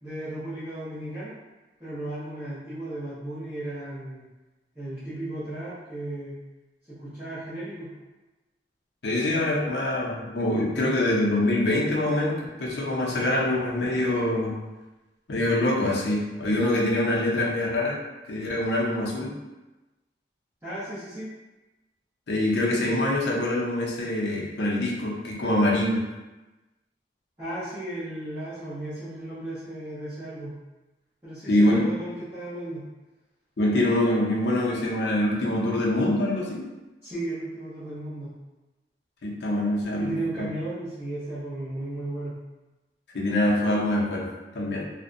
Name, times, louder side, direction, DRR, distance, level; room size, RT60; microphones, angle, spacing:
voice 1, 0.0-1.3 1.8-4.3 4.7-6.4 6.9-7.9 20.6-21.3 27.4-30.5 31.2-32.8 37.0-38.3 40.0-42.3, right 1 dB, 15° right, -16 dB, 0.7 m, -35 dB
voice 2, 9.0-14.5 15.3-18.0 18.3-19.3 22.3-26.0 31.5-31.8 33.6-36.6 39.2-40.1 43.1-44.3 44.5-44.8, left 1 dB, 75° left, -3 dB, 0.6 m, -24 dB
2.6 x 2.1 x 2.5 m, 1.1 s
head